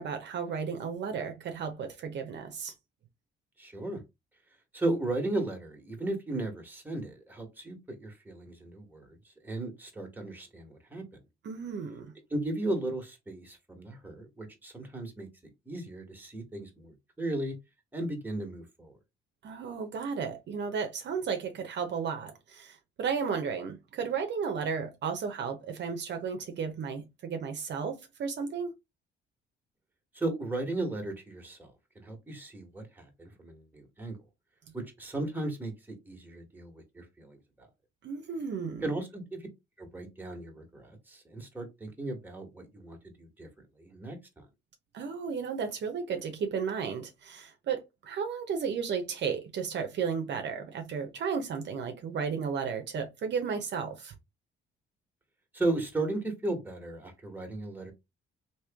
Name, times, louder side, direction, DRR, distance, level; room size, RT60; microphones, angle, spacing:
voice 1, 0.0-2.7 11.4-12.1 19.4-28.7 38.0-38.8 44.9-54.1, right 6 dB, 60° right, 0.8 m, -34 dB
voice 2, 3.6-4.0 4.7-9.2 9.4-11.0 12.3-15.3 15.7-17.5 17.9-19.0 30.1-34.2 34.7-37.7 38.8-39.4 39.8-43.5 43.8-44.5 55.5-57.9, right 2 dB, 10° right, 1.4 m, -36 dB
3.0 x 2.9 x 3.5 m
cardioid pair, 90°, 20 cm